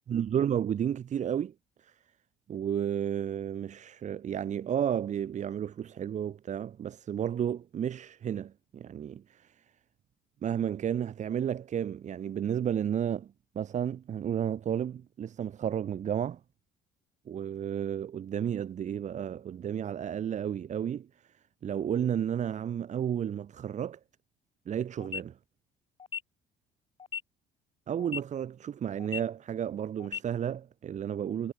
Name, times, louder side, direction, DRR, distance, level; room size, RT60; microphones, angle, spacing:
voice 1, 0.0-1.5 1.8-1.9 2.5-9.5 10.4-16.4 17.3-21.1 21.6-24.0 24.7-25.3 27.9-31.5, right 9 dB, 45° right, 1.2 m, -32 dB
sound 1, 25.0-25.2 26.0-26.2 27.0-27.2 28.0-28.2 29.0-29.2 30.0-30.2, left 6 dB, 30° left, 1.1 m, -36 dB
cardioid pair, 110°, 17 cm